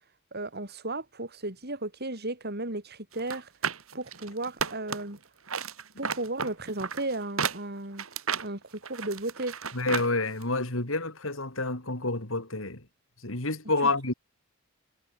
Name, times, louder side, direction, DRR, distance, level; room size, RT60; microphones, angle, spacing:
voice 1, 0.3-3.5 3.9-5.2 6.0-8.0 8.4-9.6 13.8-13.9, right 2 dB, 50° right, 6.1 m, -34 dB
sound 1, 3.2-5.2 5.5-10.1 10.4-10.5, right 6 dB, 85° right, 3.4 m, -33 dB
voice 2, 9.7-12.8 13.2-14.1, left 2 dB, 70° left, 4.3 m, -29 dB
head